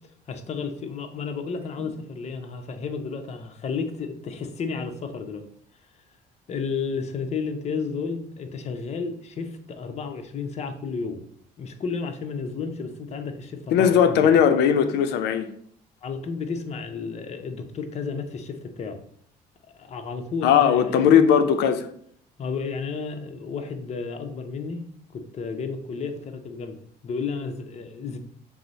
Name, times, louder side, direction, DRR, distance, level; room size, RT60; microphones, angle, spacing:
voice 1, 0.3-5.4 6.5-11.2 11.6-14.4 16.0-19.0 19.7-21.0 22.4-26.8 27.0-28.2, left 5 dB, 40° left, 0.6 m, -32 dB
voice 2, 13.7-15.5 20.4-21.9, left 8 dB, 85° left, 0.5 m, -18 dB
6.0 x 2.0 x 3.9 m
cardioid pair, 110°, 17 cm